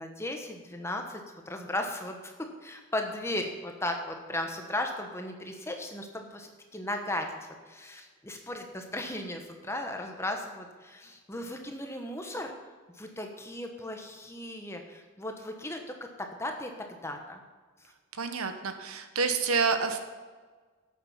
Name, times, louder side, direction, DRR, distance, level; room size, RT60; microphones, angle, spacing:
voice 1, 0.0-2.3 2.6-7.3 7.7-12.5 12.9-17.4 17.8-17.9, left 1 dB, 10° left, 4 dB, 1.1 m, -36 dB
voice 2, 18.1-20.1, right 5 dB, 80° right, 8 dB, 1.2 m, -28 dB
12.5 x 8.6 x 5.7 m, 1.4 s
head